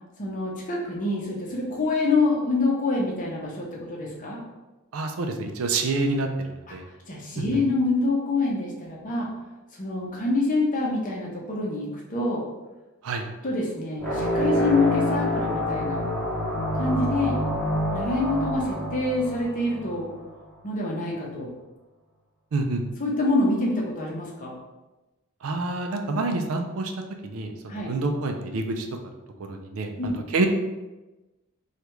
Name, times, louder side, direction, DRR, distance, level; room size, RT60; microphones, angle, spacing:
voice 1, 0.2-4.4 7.1-9.3 9.8-12.4 13.4-16.0 16.7-17.4 17.9-20.1 20.6-21.5 23.0-24.5 27.7-27.9 30.0-30.2, left 2 dB, 35° left, -2 dB, 0.7 m, -26 dB
voice 2, 4.9-6.9 7.4-7.6 13.0-13.3 22.5-22.8 25.4-26.9 27.2-28.9 29.4-30.5, right 3 dB, 70° right, 4 dB, 0.4 m, -27 dB
sound 1, 14.0-20.1, equal, 5° left, 0.9 m, -27 dB
3.2 x 2.4 x 3.0 m, 1.1 s
head